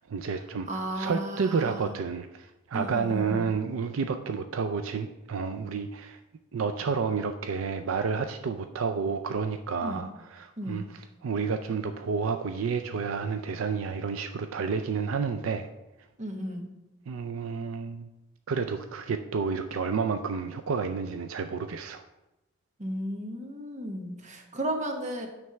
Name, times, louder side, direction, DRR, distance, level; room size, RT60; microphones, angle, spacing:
voice 1, 0.0-0.7 1.0-6.2 6.5-10.8 11.2-15.7 17.1-18.1 18.5-22.0, right 5 dB, 75° right, 8 dB, 0.4 m, -30 dB
voice 2, 0.7-1.9 2.7-3.5 9.8-10.1 10.6-10.9 16.2-16.7 22.8-25.3, right 1 dB, 35° right, 3 dB, 1.1 m, -34 dB
9.3 x 3.3 x 5.8 m, 0.96 s
head